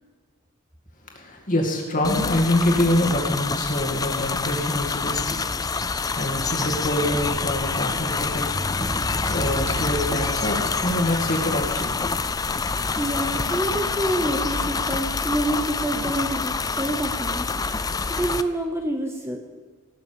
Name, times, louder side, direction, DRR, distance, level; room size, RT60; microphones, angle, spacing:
voice 1, 1.2-5.4 5.9-8.8 9.2-12.2, left 1 dB, 40° left, 1 dB, 2.2 m, -25 dB
Rainroof outside, 2.0-18.4, left 4 dB, 15° left, 0.4 m, -27 dB
sound 1, 6.6-14.2, right 1 dB, 55° right, 2.9 m, -42 dB
sound 2, 8.8-14.8, right 2 dB, 30° right, 1.1 m, -38 dB
voice 2, 12.7-17.5 17.8-19.4, right 1 dB, 10° right, 4 dB, 0.8 m, -28 dB
17.5 x 7.0 x 6.9 m, 1.5 s
head